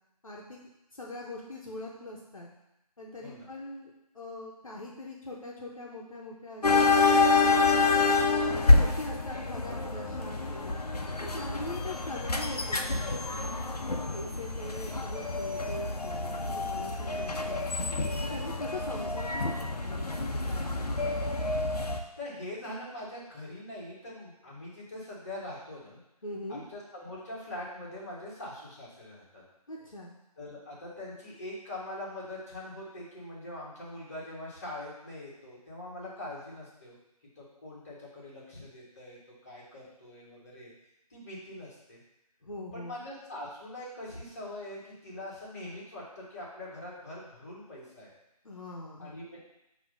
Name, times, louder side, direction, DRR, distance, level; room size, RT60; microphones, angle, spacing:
voice 1, 0.2-0.6 0.9-2.5 3.0-6.9 7.4-7.8 8.7-10.8 11.2-13.5 14.1-17.7 18.2-21.1 26.2-26.6 29.7-30.1 42.4-43.0 48.4-49.1, left 2 dB, 60° left, -3 dB, 1.1 m, -42 dB
sound 1, 6.6-22.0, left 3 dB, 80° left, 0.8 m, -27 dB
voice 2, 22.2-26.0 26.5-29.4 30.4-36.9 37.3-40.7 41.1-42.0 42.7-48.1 49.0-49.4, left 1 dB, 25° left, -6 dB, 1.5 m, -43 dB
5.8 x 3.0 x 5.3 m, 0.88 s
figure-of-eight pair, 170°, 20 cm